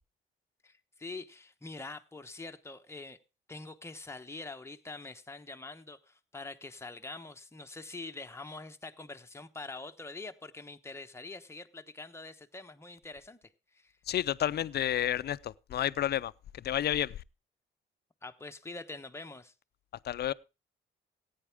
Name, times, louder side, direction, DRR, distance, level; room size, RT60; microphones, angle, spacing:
voice 1, 0.6-3.2 3.5-13.9 18.2-19.5, left 3 dB, 15° left, 1.1 m, -45 dB
voice 2, 14.1-17.2 20.0-20.3, left 11 dB, 55° left, 0.5 m, -31 dB
15.0 x 9.4 x 3.6 m
cardioid pair, 90°, 20 cm